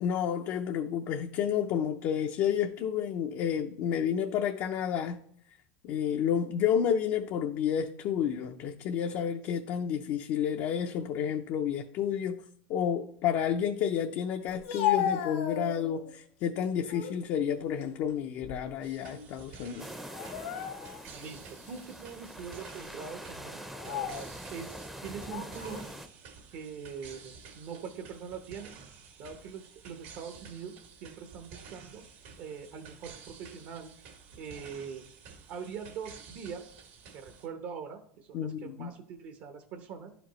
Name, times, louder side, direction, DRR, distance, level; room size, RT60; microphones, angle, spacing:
voice 1, 0.0-5.2 5.8-12.4 12.7-19.9 38.3-38.9, left 8 dB, 50° left, 0.5 m, -30 dB
Speech, 14.5-16.1 16.6-17.2 17.6-18.9 19.1-19.3 20.1-21.1 21.7-21.8 22.6-22.8 23.6-24.3 25.2-25.9, left 9 dB, 80° left, 1.8 m, -34 dB
sound 1, 18.8-37.5, right 6 dB, 80° right, 1.9 m, -51 dB
sound 2, 19.8-26.1, equal, 5° right, 0.6 m, -44 dB
voice 2, 21.1-26.0 26.5-28.7 29.2-30.7 31.0-32.0 32.4-33.9 34.4-35.0 35.5-36.7 37.1-40.1, right 6 dB, 60° right, 0.9 m, -43 dB
11.0 x 5.0 x 3.0 m
supercardioid pair, 125°, 6 cm